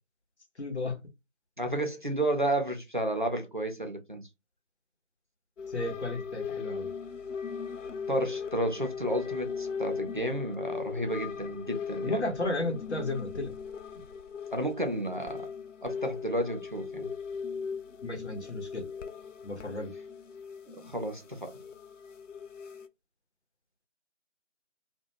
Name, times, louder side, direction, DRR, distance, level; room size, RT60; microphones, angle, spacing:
voice 1, 0.6-1.0 5.7-6.9 12.0-13.5 18.0-18.9 19.4-19.9, left 2 dB, 65° left, 1.0 m, -33 dB
voice 2, 1.6-4.2 8.1-12.2 14.5-15.5 15.8-17.1 20.8-21.6, right 1 dB, 45° right, 0.5 m, -32 dB
sound 1, 5.6-22.9, left 6 dB, 80° left, 0.5 m, -39 dB
2.4 x 2.2 x 2.8 m
figure-of-eight pair, 175°, 37 cm